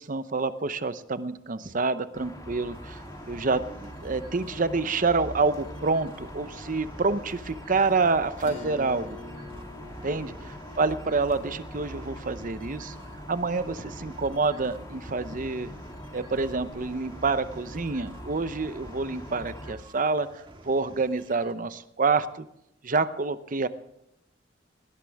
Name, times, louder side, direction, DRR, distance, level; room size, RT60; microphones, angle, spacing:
voice 1, 0.0-3.0 3.3-9.2 10.0-12.9 13.3-15.7 16.1-20.3 20.6-22.5 22.8-23.7, right 4 dB, 45° right, 13 dB, 0.8 m, -27 dB
sound 1, 2.1-19.7, equal, 20° left, 3.0 m, -42 dB
sound 2, 2.7-21.5, right 2 dB, 30° right, 1.9 m, -52 dB
Acoustic guitar / Strum, 8.3-13.3, left 2 dB, 45° left, 5.2 m, -46 dB
20.0 x 17.5 x 3.5 m, 0.79 s
head